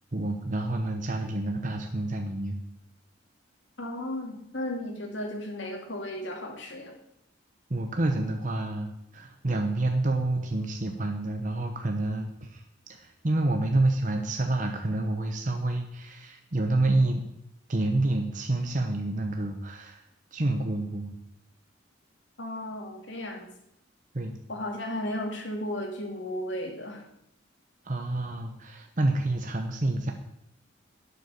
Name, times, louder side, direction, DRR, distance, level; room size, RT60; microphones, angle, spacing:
voice 1, 0.1-2.6 7.7-8.9 9.1-12.6 12.9-17.3 17.7-21.1 24.1-24.4 27.8-30.1, right 2 dB, 40° right, 4 dB, 0.9 m, -28 dB
voice 2, 3.8-6.9 22.4-23.5 24.5-27.0, left 1 dB, 70° left, 2 dB, 2.4 m, -34 dB
11.5 x 6.9 x 6.6 m, 0.79 s
head